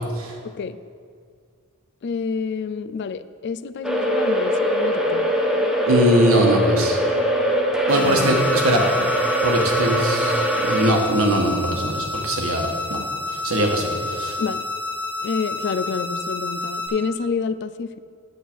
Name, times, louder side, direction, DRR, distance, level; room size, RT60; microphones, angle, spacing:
voice 1, 0.4-0.8 2.0-5.3 7.9-8.4 8.7-9.1 14.4-14.7 15.2-18.0, left 5 dB, 55° left, 14 dB, 0.4 m, -28 dB
sound 1, 3.8-10.9, equal, 5° right, 1.0 m, -22 dB
voice 2, 5.9-7.0 7.9-8.8 9.4-13.0 13.4-14.4, right 1 dB, 75° right, 1 dB, 1.5 m, -21 dB
sound 2, 7.9-16.9, left 2 dB, 35° right, 2.3 m, -29 dB
9.7 x 8.3 x 4.6 m, 2.1 s
head